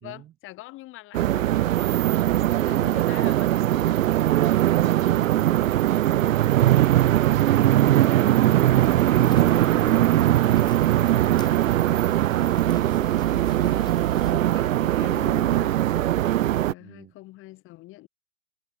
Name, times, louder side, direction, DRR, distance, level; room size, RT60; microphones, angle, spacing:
voice 1, 0.0-4.3 13.4-13.9 14.2-15.8 16.6-18.1, left 18 dB, 30° left, 2.4 m, -45 dB
sound 1, 1.1-16.7, right 13 dB, 70° right, 0.5 m, -20 dB
voice 2, 4.9-6.4 16.8-17.1, right 12 dB, 15° right, 0.8 m, -40 dB
sound 2, 8.8-14.3, left 5 dB, 10° left, 1.7 m, -44 dB
hypercardioid pair, 115°, 41 cm